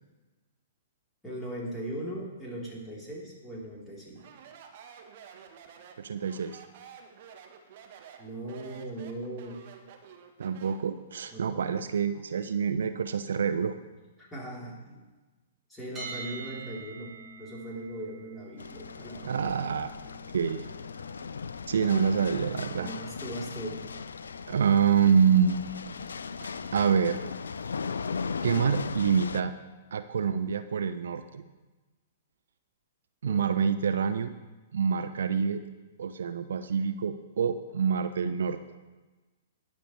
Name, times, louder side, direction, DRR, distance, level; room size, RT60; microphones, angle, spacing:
voice 1, 1.2-4.3 8.2-9.6 11.3-11.8 14.2-15.0 15.7-17.1 17.4-19.5 22.7-23.9 25.4-25.5 33.3-33.4, right 1 dB, 5° left, -6 dB, 3.7 m, -39 dB
Speech, 4.2-10.9, right 8 dB, 50° right, 1.3 m, -50 dB
voice 2, 6.0-6.6 10.4-13.7 19.2-19.9 20.3-20.6 21.7-22.9 24.5-25.6 26.4-27.2 28.4-29.5 29.9-31.4 33.2-34.3 34.7-35.6 36.0-38.6, right 7 dB, 65° right, 10 dB, 0.5 m, -26 dB
sound 1, 16.0-27.9, right 2 dB, 15° right, 3.7 m, -49 dB
sound 2, 18.6-29.4, left 5 dB, 75° left, 0.4 m, -37 dB
19.5 x 6.8 x 3.3 m, 1.2 s
figure-of-eight pair, 115°, 0 cm